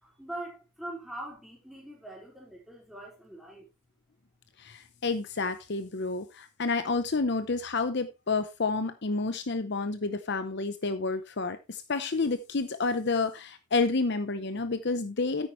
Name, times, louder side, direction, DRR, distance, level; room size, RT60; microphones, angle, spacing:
voice 1, 0.0-3.7, right 1 dB, ahead, 4.0 m, -42 dB
voice 2, 4.6-15.5, left 3 dB, 55° left, 0.7 m, -30 dB
9.7 x 9.0 x 3.1 m
head